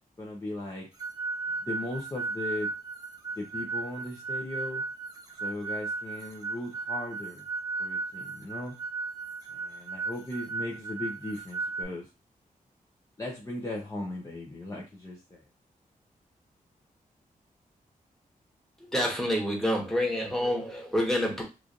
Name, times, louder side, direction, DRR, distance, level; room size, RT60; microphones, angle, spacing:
voice 1, 0.2-0.9 1.6-2.7 3.4-4.8 5.4-7.4 7.8-8.7 9.5-12.1 13.2-15.4, left 2 dB, 20° left, -3 dB, 0.7 m, -37 dB
sound 1, 1.0-11.8, right 3 dB, 25° right, 0.8 m, -35 dB
voice 2, 18.8-21.4, equal, ahead, -2 dB, 1.2 m, -28 dB
3.1 x 2.5 x 3.7 m, 0.28 s
wide cardioid pair, 125°, 15 cm